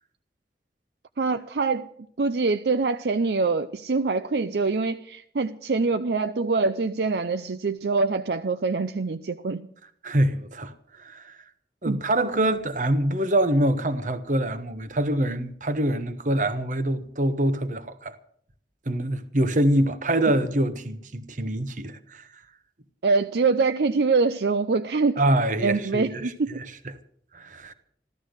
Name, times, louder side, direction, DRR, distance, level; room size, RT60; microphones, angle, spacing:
voice 1, 1.2-1.9 2.2-9.7 11.9-12.0 23.0-25.2 25.6-26.5, right 4 dB, 70° right, 0.5 m, -24 dB
voice 2, 10.0-11.4 11.8-18.2 18.9-22.3 25.2-26.7 27.3-27.7, right 1 dB, 45° right, 1.1 m, -25 dB
14.5 x 13.5 x 6.5 m
head